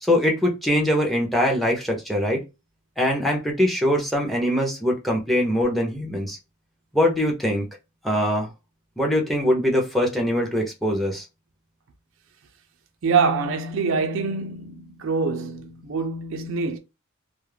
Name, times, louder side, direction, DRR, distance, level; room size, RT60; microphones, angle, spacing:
voice 1, 0.0-2.4 3.0-6.4 6.9-7.7 8.0-8.5 9.0-11.3, equal, ahead, 0.5 m, -22 dB
voice 2, 13.0-16.8, right 5 dB, 60° right, 0.4 m, -25 dB
2.3 x 2.0 x 3.1 m
head